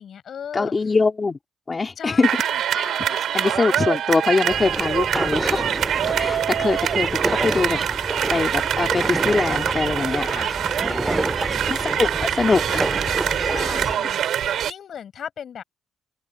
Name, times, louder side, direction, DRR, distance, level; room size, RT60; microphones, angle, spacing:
voice 1, 0.0-0.7 2.0-3.9 5.5-5.7 10.2-10.5 10.8-11.7 13.4-15.6, left 8 dB, 50° left, 7.0 m, -38 dB
voice 2, 0.5-1.4 1.7-2.3 2.7-5.7 6.2-10.3 11.6-13.0, left 4 dB, 20° left, 2.8 m, -23 dB
sound 1, 2.2-14.7, right 10 dB, 60° right, 4.6 m, -24 dB
sound 2, 4.5-14.0, right 2 dB, 10° right, 2.6 m, -28 dB
cardioid pair, 140°, 0 cm